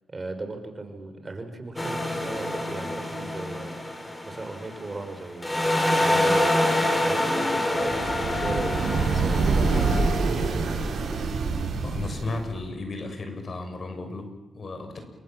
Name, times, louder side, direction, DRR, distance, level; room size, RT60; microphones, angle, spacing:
voice 1, 0.1-3.8 4.3-6.5 6.9-10.0 10.5-11.0, right 2 dB, 30° right, 7 dB, 5.4 m, -37 dB
sound 1, 1.8-5.1 5.4-10.0, left 1 dB, 15° left, 6.3 m, -26 dB
Wind instrument woodwind instrument, 5.7-10.9, left 5 dB, 80° left, 3.7 m, -37 dB
sound 2, 7.8-12.6, right 4 dB, 65° right, 6.4 m, -26 dB
voice 2, 11.8-15.0, left 2 dB, 50° left, 6 dB, 7.1 m, -34 dB
28.0 x 25.5 x 7.6 m, 1.1 s
cardioid pair, 80°, 0 cm